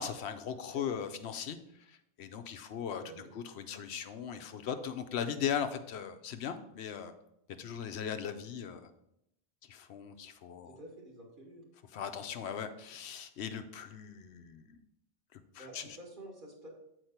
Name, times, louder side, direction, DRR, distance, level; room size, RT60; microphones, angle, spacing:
voice 1, 0.0-1.6 1.9-7.1 7.6-8.8 9.6-10.8 11.9-14.8 15.3-15.9, left 8 dB, 80° left, 8 dB, 0.9 m, -39 dB
voice 2, 0.5-0.9 3.0-3.3 10.5-11.6 15.6-16.7, right 1 dB, 50° right, 0 dB, 1.8 m, -50 dB
8.0 x 4.7 x 4.4 m, 0.80 s
omnidirectional pair, 1.1 m